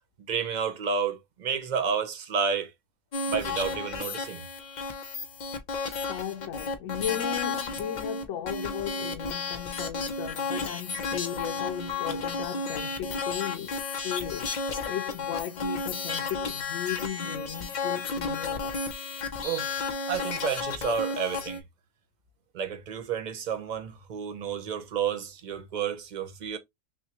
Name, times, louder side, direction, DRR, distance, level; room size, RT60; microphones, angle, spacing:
voice 1, 0.3-2.7 3.3-4.4 19.4-19.7 20.1-21.6 22.5-26.6, right 6 dB, 45° right, 0.6 m, -30 dB
sound 1, 3.1-21.6, left 4 dB, 45° left, 0.6 m, -33 dB
voice 2, 6.1-19.1, left 9 dB, 85° left, 1.0 m, -36 dB
6.0 x 2.2 x 2.9 m
omnidirectional pair, 1.3 m